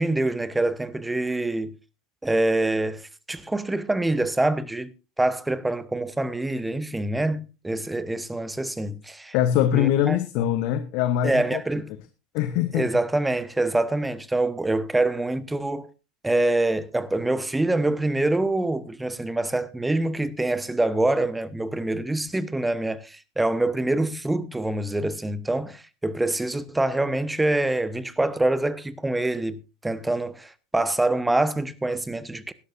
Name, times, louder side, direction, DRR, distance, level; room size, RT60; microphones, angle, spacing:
voice 1, 0.0-1.8 2.2-4.9 5.2-9.3 9.7-10.2 11.2-11.9 12.7-15.9 16.2-32.5, right 2 dB, 10° right, 1.1 m, -25 dB
voice 2, 9.3-11.6 12.3-12.9, left 11 dB, 55° left, 1.0 m, -23 dB
18.5 x 11.5 x 2.6 m
figure-of-eight pair, 80°, 0 cm